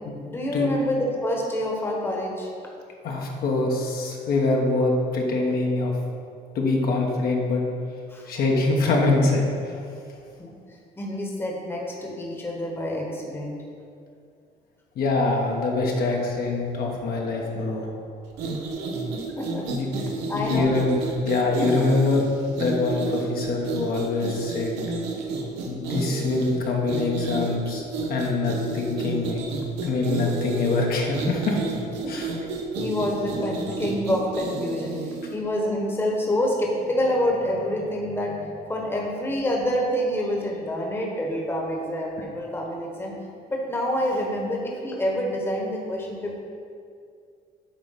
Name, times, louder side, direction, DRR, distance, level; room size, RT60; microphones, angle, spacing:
voice 1, 0.2-2.5 8.1-8.3 10.4-10.5 11.0-13.6 19.4-19.7 20.0-20.7 32.0-32.5 32.8-35.0 35.3-43.1 43.5-46.4, left 1 dB, 15° left, -1 dB, 1.1 m, -27 dB
voice 2, 3.0-5.9 6.5-7.6 8.2-9.8 15.0-17.9 19.7-19.9 20.3-21.0 21.2-24.7 25.7-27.8 28.1-29.4 29.8-31.6 32.1-32.3 33.0-33.1, left 3 dB, 60° left, -1 dB, 1.1 m, -24 dB
sound 1, 18.3-35.4, right 3 dB, 90° right, 0.8 m, -31 dB
8.6 x 3.0 x 5.6 m, 2.3 s
cardioid pair, 110°, 17 cm